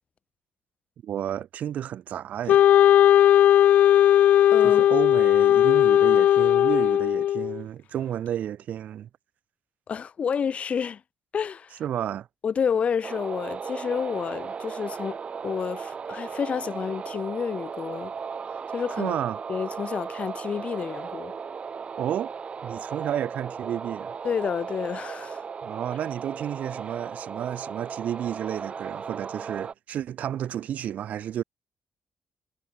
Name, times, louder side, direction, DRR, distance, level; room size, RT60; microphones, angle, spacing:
voice 1, 1.0-2.6 4.6-9.1 11.8-12.3 19.0-19.4 22.0-22.3 22.6-24.1 25.6-31.4, right 10 dB, 75° right, 1.4 m, -31 dB
Wind instrument woodwind instrument, 2.5-7.6, left 11 dB, 75° left, 0.6 m, -17 dB
voice 2, 4.5-4.8 9.9-11.0 11.3-11.8 12.4-15.2 15.4-18.1 18.7-19.2 19.5-21.3 24.2-25.4, left 7 dB, 55° left, 4.2 m, -29 dB
sound 1, 13.0-29.7, right 6 dB, 50° right, 6.9 m, -36 dB
cardioid pair, 75°, 3 cm